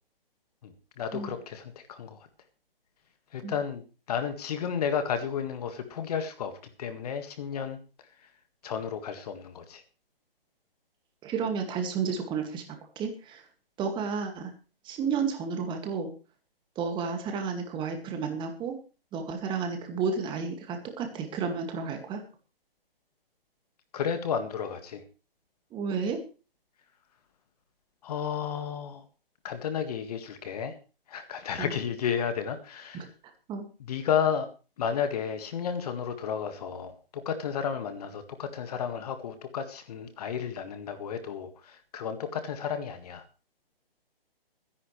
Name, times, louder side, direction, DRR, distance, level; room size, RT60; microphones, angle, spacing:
voice 1, 0.6-2.3 3.3-6.5 6.8-7.8 8.6-9.8 23.9-25.0 28.0-29.0 29.4-30.7 31.1-33.1 33.8-34.5 34.8-43.2, left 7 dB, 40° left, 8 dB, 1.9 m, -32 dB
voice 2, 11.2-12.6 13.0-13.4 13.8-14.5 14.8-16.1 16.8-18.8 19.1-22.2 25.7-26.2 31.6-31.7 32.9-33.1 33.5-33.6, right 5 dB, 15° right, 5 dB, 2.2 m, -31 dB
23.5 x 10.5 x 3.3 m, 0.35 s
figure-of-eight pair, 135°, 29 cm